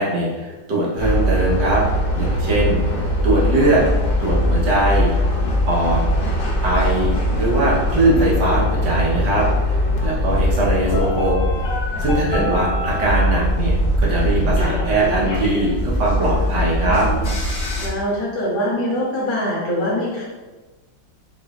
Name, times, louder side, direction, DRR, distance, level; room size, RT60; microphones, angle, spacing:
voice 1, 0.0-1.8 2.1-2.8 3.2-3.8 4.2-5.1 5.7-6.0 6.6-7.1 7.4-11.4 12.0-17.1, right 1 dB, 65° right, -5 dB, 1.7 m, -21 dB
sound 1, 1.0-17.9, equal, 55° left, 0.6 m, -21 dB
voice 2, 12.2-12.7 17.8-20.2, equal, 85° left, -7 dB, 2.3 m, -23 dB
6.6 x 3.1 x 2.5 m, 1.2 s
omnidirectional pair, 2.2 m